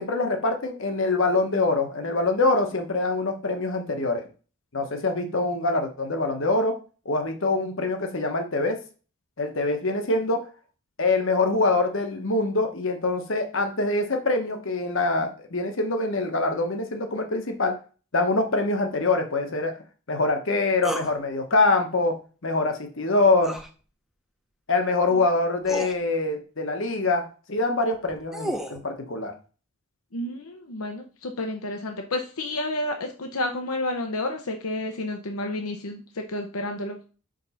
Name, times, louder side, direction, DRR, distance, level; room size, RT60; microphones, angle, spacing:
voice 1, 0.0-4.2 4.7-6.7 7.0-8.8 9.4-10.4 11.0-17.8 18.1-19.7 20.1-22.1 22.4-23.6 24.7-29.3, left 2 dB, 60° left, 5 dB, 1.1 m, -24 dB
sound 1, 20.8-21.1 23.4-23.7 25.0-25.1 25.6-26.0 27.9-28.8, right 1 dB, ahead, 0.6 m, -32 dB
voice 2, 30.1-37.1, left 1 dB, 80° left, 4 dB, 0.8 m, -30 dB
5.2 x 3.9 x 5.6 m, 0.36 s
head